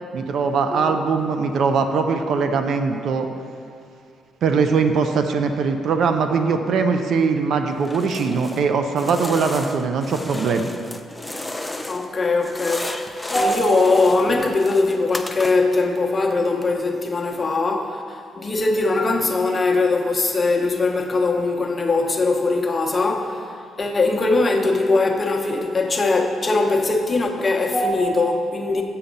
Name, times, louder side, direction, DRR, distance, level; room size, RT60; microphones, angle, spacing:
voice 1, 0.1-3.3 4.4-10.7, right 5 dB, 65° right, 0.5 m, -21 dB
sound 1, 7.8-8.7 8.9-12.1 12.4-15.8, left 1 dB, 10° left, 0.4 m, -33 dB
voice 2, 11.9-28.8, left 3 dB, 30° left, 0.8 m, -21 dB
7.0 x 5.6 x 5.2 m
cardioid pair, 90°, 0 cm